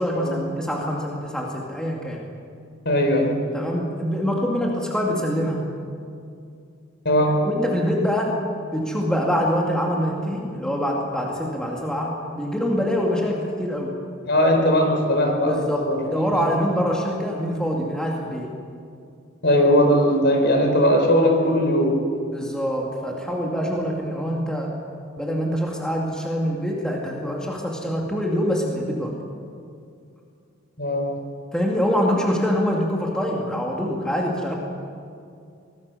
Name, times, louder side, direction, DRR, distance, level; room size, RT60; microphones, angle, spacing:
voice 1, 0.0-2.2 3.5-5.7 7.4-8.4 8.7-13.9 15.5-18.5 22.3-24.7 25.2-29.2 31.5-34.5, equal, 5° left, -2 dB, 2.4 m, -25 dB
voice 2, 2.8-3.3 7.0-7.4 14.3-15.5 15.9-16.0 19.4-22.0 30.8-31.1, equal, 55° left, 3 dB, 4.6 m, -19 dB
24.5 x 19.0 x 7.0 m, 2.4 s
head